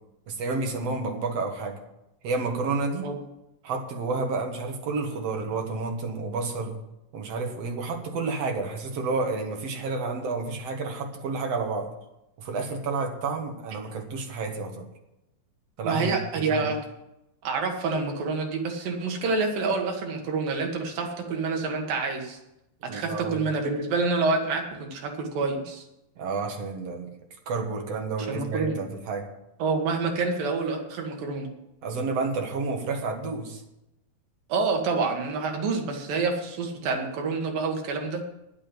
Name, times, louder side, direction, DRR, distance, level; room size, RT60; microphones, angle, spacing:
voice 1, 0.3-1.8 2.2-3.1 3.6-6.8 7.1-11.9 12.4-14.9 15.8-16.7 22.9-23.4 26.2-27.1 27.5-29.3 31.8-33.6, right 3 dB, 55° right, 3 dB, 2.2 m, -30 dB
voice 2, 15.8-16.8 17.4-22.4 22.8-25.8 28.3-28.8 29.6-31.5 34.5-38.3, right 4 dB, 80° right, 2 dB, 3.5 m, -27 dB
9.9 x 8.9 x 7.7 m, 0.88 s
omnidirectional pair, 4.0 m